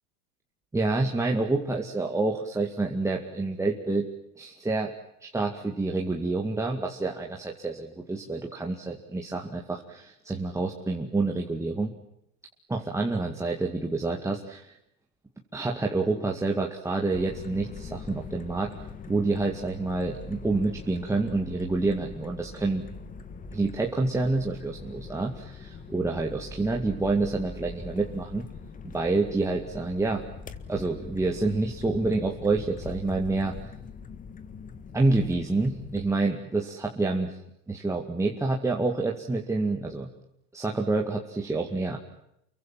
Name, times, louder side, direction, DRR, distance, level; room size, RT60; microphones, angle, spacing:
voice 1, 0.7-4.1 4.4-4.9 5.2-11.9 12.7-14.7 15.5-18.7 19.1-22.8 23.5-28.5 28.9-30.2 30.7-33.5 34.9-37.4 37.7-40.1 40.5-42.0, right 3 dB, 5° right, 0 dB, 2.2 m, -28 dB
sound 1, 17.1-36.1, left 4 dB, 15° left, 1.7 m, -42 dB
29.0 x 23.5 x 7.6 m, 0.78 s
supercardioid pair, 130°, 46 cm